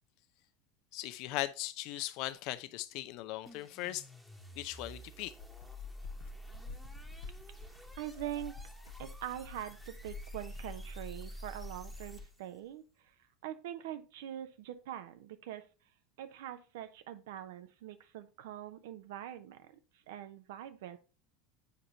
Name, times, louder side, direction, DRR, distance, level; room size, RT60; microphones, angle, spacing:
voice 1, 0.9-4.0 4.6-5.3, left 16 dB, 55° left, 0.6 m, -38 dB
sound 1, 3.5-12.6, right 1 dB, 5° right, 1.2 m, -49 dB
sound 2, 5.2-12.3, left 5 dB, 75° left, 1.1 m, -51 dB
voice 2, 8.0-8.5 9.0-12.9 13.4-15.6 16.2-19.8 20.1-21.0, right 12 dB, 65° right, 0.8 m, -43 dB
8.2 x 4.9 x 2.8 m
hypercardioid pair, 80°, 0 cm